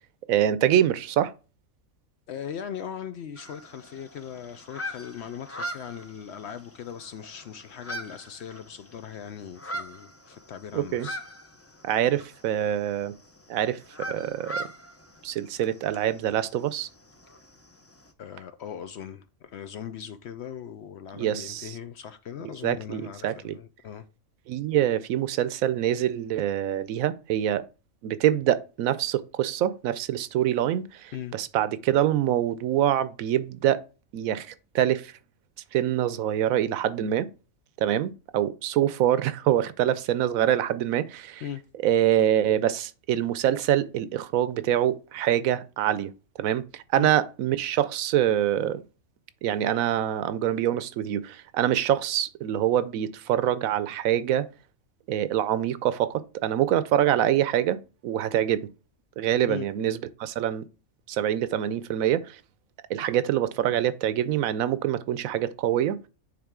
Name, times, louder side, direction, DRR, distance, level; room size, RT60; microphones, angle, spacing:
voice 1, 0.3-1.3 10.7-11.1 11.8-13.1 13.5-13.8 14.1-14.7 15.2-16.9 21.2-21.7 22.6-23.6 24.5-27.6 28.0-33.8 34.1-35.1 35.7-37.3 37.8-41.4 41.8-46.1 46.4-48.8 49.4-54.5 55.1-57.8 58.0-58.7 59.2-60.7 61.1-62.4 62.9-66.0, right 11 dB, 80° right, 1.0 m, -25 dB
voice 2, 2.3-11.2 18.2-24.1 31.1-31.4 41.4-41.6 42.2-42.3 47.0-47.1 59.5-59.7, left 9 dB, 65° left, 0.7 m, -39 dB
sound 1, 3.4-18.1, right 1 dB, 25° left, 0.3 m, -41 dB
9.5 x 3.7 x 3.6 m
omnidirectional pair, 1.4 m